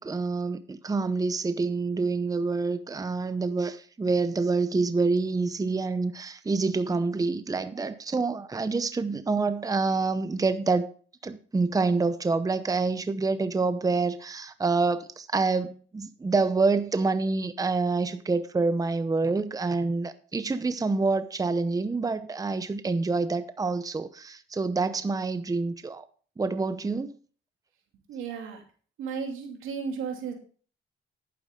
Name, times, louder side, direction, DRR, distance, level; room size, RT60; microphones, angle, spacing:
voice 1, 0.0-10.9 11.2-26.1 26.4-27.1, right 3 dB, 20° right, 0.7 m, -27 dB
voice 2, 28.1-28.6 29.0-30.3, right 6 dB, 85° right, 2.9 m, -34 dB
11.0 x 9.5 x 3.6 m
cardioid pair, 90°, 20 cm